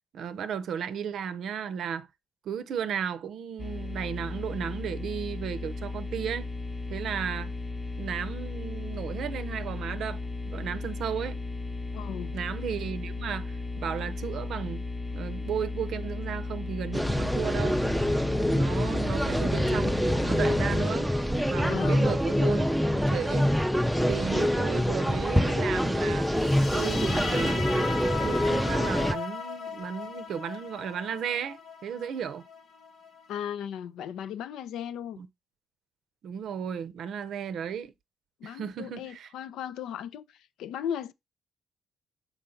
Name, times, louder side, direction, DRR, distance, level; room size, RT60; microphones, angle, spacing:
voice 1, 0.1-2.1 2.4-6.5 6.9-7.5 8.0-11.4 12.3-14.9 15.1-17.8 18.5-21.1 21.4-22.7 23.1-23.5 24.1-26.3 26.7-32.4 35.2-35.3 36.2-37.9 38.4-39.3, right 8 dB, 70° right, 0.6 m, -34 dB
sound 1, 3.6-20.9, left 3 dB, 30° left, 0.8 m, -35 dB
voice 2, 11.9-12.3 21.7-22.2 33.3-35.2 38.4-41.1, left 9 dB, 85° left, 0.4 m, -36 dB
sound 2, 16.9-29.1, equal, ahead, 0.5 m, -25 dB
sound 3, 26.3-33.4, left 5 dB, 60° left, 1.1 m, -37 dB
5.7 x 4.6 x 3.7 m
cardioid pair, 95°, 0 cm